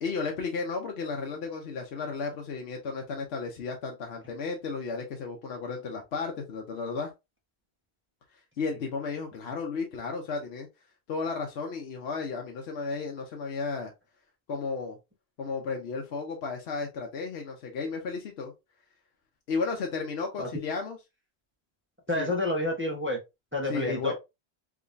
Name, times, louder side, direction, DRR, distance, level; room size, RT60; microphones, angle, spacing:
voice 1, 0.0-7.1 8.6-10.7 11.1-13.9 14.5-15.0 15.4-18.5 19.5-21.0 22.1-22.3 23.7-24.1, left 4 dB, 80° left, 1.0 m, -33 dB
voice 2, 22.1-23.2 23.5-24.1, left 1 dB, 15° right, 0.8 m, -29 dB
3.6 x 2.9 x 2.5 m
omnidirectional pair, 1.1 m